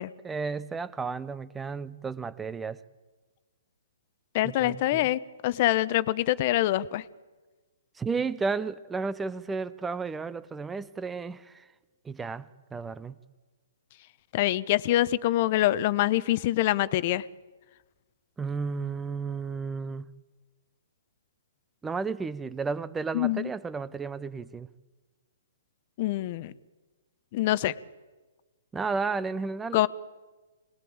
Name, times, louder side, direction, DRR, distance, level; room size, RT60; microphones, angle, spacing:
voice 1, 0.0-2.8 4.4-5.1 7.9-11.7 12.0-13.1 18.4-20.1 21.8-24.7 28.7-29.9, right 4 dB, 10° right, 17 dB, 0.8 m, -33 dB
voice 2, 4.3-7.0 14.3-17.2 23.1-23.5 26.0-26.5 27.3-27.7 29.7-29.9, left 15 dB, 45° left, 16 dB, 0.9 m, -25 dB
26.0 x 19.5 x 8.8 m, 1.3 s
hypercardioid pair, 125°, 0 cm